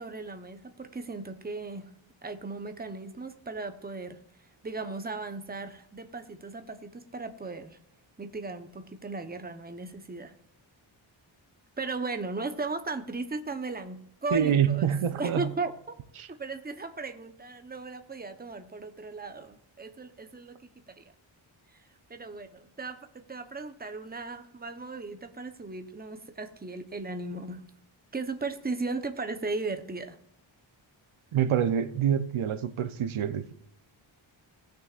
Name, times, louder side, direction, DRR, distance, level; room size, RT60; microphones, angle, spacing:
voice 1, 0.0-1.9 2.2-4.2 4.6-7.8 8.2-10.3 11.8-15.9 16.4-20.5 21.0-21.1 22.1-23.0 23.3-27.6 28.1-30.2, right 3 dB, 20° right, 7 dB, 0.9 m, -36 dB
voice 2, 14.3-15.5 16.2-16.3 31.3-33.5, right 9 dB, 85° right, 11 dB, 0.8 m, -26 dB
18.5 x 6.5 x 2.5 m, 0.76 s
wide cardioid pair, 105°, 48 cm